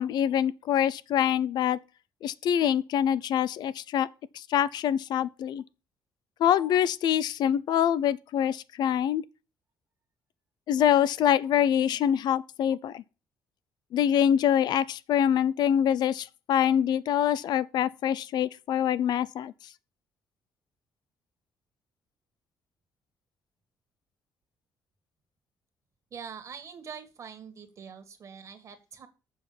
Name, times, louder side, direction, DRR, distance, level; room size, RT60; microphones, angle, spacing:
voice 1, 0.0-1.8 2.2-4.1 4.3-5.6 6.4-9.2 10.7-13.0 13.9-19.5, left 9 dB, 65° left, 0.6 m, -25 dB
voice 2, 26.1-29.1, right 6 dB, 40° right, 1.8 m, -44 dB
7.4 x 6.0 x 7.1 m
cardioid pair, 135°, 8 cm